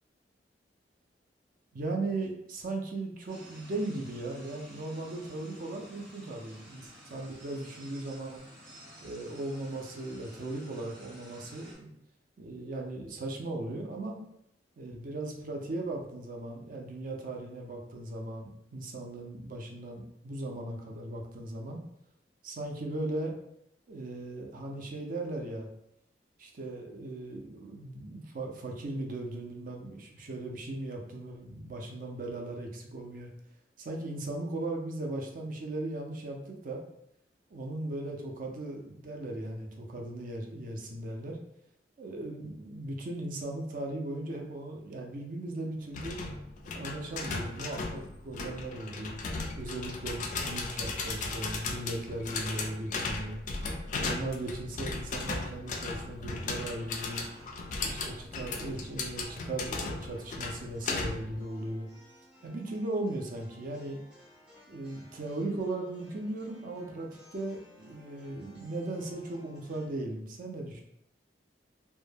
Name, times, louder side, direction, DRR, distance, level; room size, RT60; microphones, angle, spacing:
voice 1, 1.7-8.5 9.0-11.9 12.4-14.2 14.8-21.8 22.4-23.3 23.9-25.7 26.4-33.3 33.8-36.8 37.5-41.4 42.0-46.2 46.7-49.2 49.6-53.4 53.9-57.3 57.8-61.9 62.4-64.0 64.7-70.8, right 2 dB, 50° right, 2 dB, 0.5 m, -37 dB
sound 1, 3.3-11.8, equal, 85° right, 1.1 m, -52 dB
sound 2, 45.9-61.4, left 3 dB, 45° left, 0.3 m, -36 dB
sound 3, 56.5-69.9, left 1 dB, 5° right, 0.6 m, -58 dB
2.2 x 2.1 x 3.2 m, 0.77 s
head